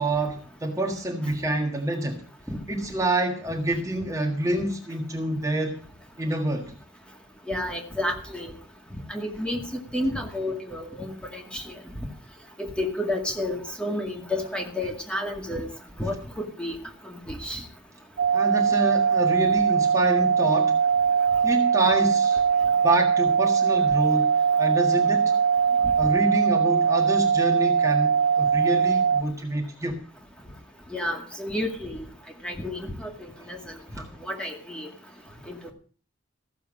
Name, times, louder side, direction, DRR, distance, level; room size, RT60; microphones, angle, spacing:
voice 1, 0.0-2.2 2.7-5.8 6.2-6.7 18.3-20.8 21.4-22.4 22.8-25.4 26.0-30.0, right 1 dB, 15° right, 1.7 m, -27 dB
voice 2, 7.5-8.5 9.1-11.7 12.6-15.7 16.0-16.7 17.1-17.6 30.9-32.0 32.4-33.6 34.2-34.9 35.5-35.6, left 1 dB, 5° left, 2.1 m, -31 dB
sound 1, 18.2-29.2, right 6 dB, 65° right, 0.6 m, -21 dB
15.0 x 7.2 x 7.4 m
head